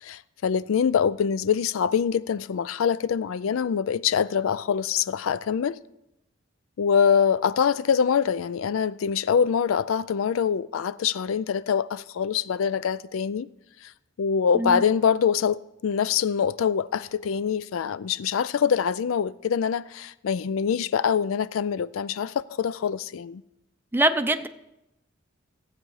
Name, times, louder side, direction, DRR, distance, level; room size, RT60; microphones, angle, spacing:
voice 1, 0.0-5.8 6.8-13.5 13.8-13.9 14.2-23.4, left 7 dB, 80° left, 0.4 m, -24 dB
voice 2, 23.9-24.5, right 1 dB, 10° right, 0.5 m, -23 dB
15.0 x 8.7 x 4.8 m
head